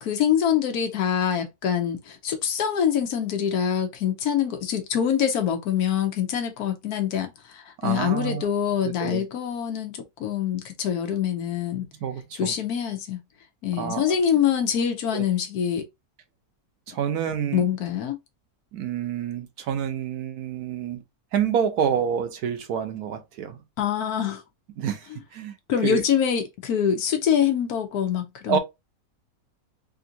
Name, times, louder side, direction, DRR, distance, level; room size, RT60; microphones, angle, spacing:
voice 1, 0.0-11.9 12.4-13.2 13.6-15.9 17.5-18.2 23.8-24.4 25.7-28.6, left 8 dB, 80° left, 1.2 m, -25 dB
voice 2, 7.8-8.5 8.8-9.3 12.0-12.5 13.7-14.2 15.1-15.2 16.9-17.6 18.7-21.0 21.3-23.6 24.8-25.6 25.8-26.0 28.5-28.6, right 8 dB, 75° right, 1.2 m, -28 dB
3.5 x 2.5 x 2.7 m
omnidirectional pair, 1.6 m